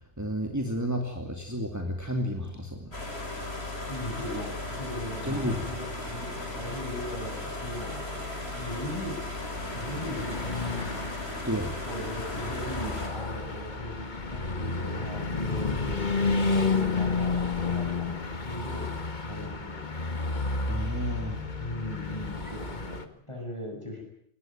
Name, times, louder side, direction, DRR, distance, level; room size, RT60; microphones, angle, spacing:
voice 1, 0.2-2.9 5.2-5.7 11.4-11.8 20.7-21.5, equal, 15° right, 3 dB, 2.7 m, -31 dB
sound 1, 2.9-13.1, left 2 dB, 65° left, 5.2 m, -36 dB
voice 2, 3.9-8.2 8.5-9.2 9.7-11.1 11.8-16.1 16.7-18.9 19.2-19.9 21.6-24.0, left 1 dB, 25° left, 2 dB, 8.1 m, -39 dB
Car passing by / Truck, 8.7-23.0, left 4 dB, 40° left, 1.8 m, -31 dB
20.5 x 20.0 x 9.3 m, 0.67 s
omnidirectional pair, 1.2 m